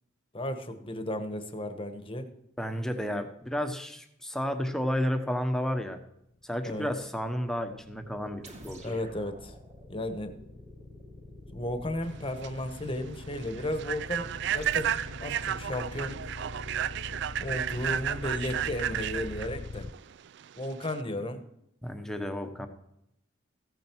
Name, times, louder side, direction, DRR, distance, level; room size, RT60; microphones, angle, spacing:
voice 1, 0.3-2.3 6.6-6.9 8.8-9.5 9.9-10.4 11.5-14.9 15.2-16.2 17.4-19.9 20.6-21.4, left 1 dB, 25° left, 8 dB, 1.2 m, -34 dB
voice 2, 2.6-6.0 6.4-8.9 21.8-22.7, equal, 5° left, 6 dB, 1.1 m, -32 dB
sound 1, 7.1-19.9, left 3 dB, 45° left, 0.5 m, -43 dB
sound 2, 8.4-12.7 14.6-15.3, right 1 dB, 35° right, 2.8 m, -50 dB
Human voice / Train, 12.1-21.0, right 10 dB, 60° right, 0.4 m, -33 dB
15.0 x 9.0 x 4.6 m, 0.79 s
head